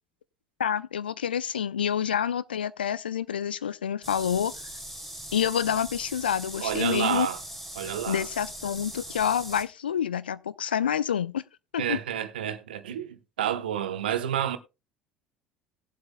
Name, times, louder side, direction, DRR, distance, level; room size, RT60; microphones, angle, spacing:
voice 1, 0.6-4.5 5.3-7.3 8.1-11.4 11.7-12.0, left 9 dB, 80° left, 0.5 m, -28 dB
sound 1, 4.0-9.6, equal, 5° left, 3.0 m, -40 dB
voice 2, 6.6-7.4 7.7-8.3 11.8-14.6, right 10 dB, 75° right, 0.9 m, -29 dB
19.0 x 7.8 x 2.2 m
figure-of-eight pair, 65°, 5 cm